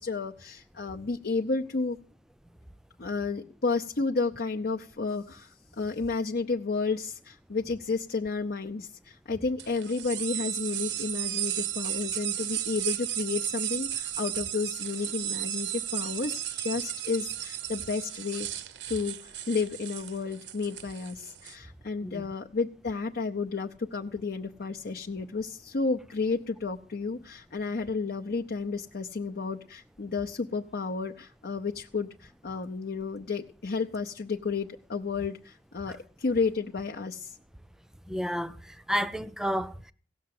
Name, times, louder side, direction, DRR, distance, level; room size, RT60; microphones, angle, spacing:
voice 1, 0.0-2.0 3.0-18.5 18.9-37.4, left 4 dB, 65° left, 0.7 m, -32 dB
sound 1, 9.6-21.5, right 11 dB, 80° right, 0.7 m, -34 dB
voice 2, 38.1-39.9, equal, 5° right, 0.5 m, -31 dB
16.5 x 6.6 x 7.8 m
head